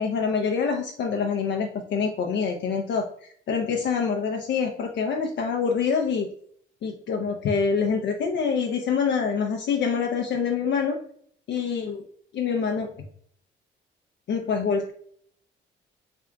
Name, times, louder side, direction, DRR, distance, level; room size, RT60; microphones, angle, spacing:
voice 1, 0.0-6.3 6.8-11.0 11.5-12.0 12.3-12.9 14.3-14.9, left 6 dB, 60° left, 2 dB, 0.5 m, -26 dB
3.4 x 2.3 x 3.8 m, 0.62 s
cardioid pair, 90°, 20 cm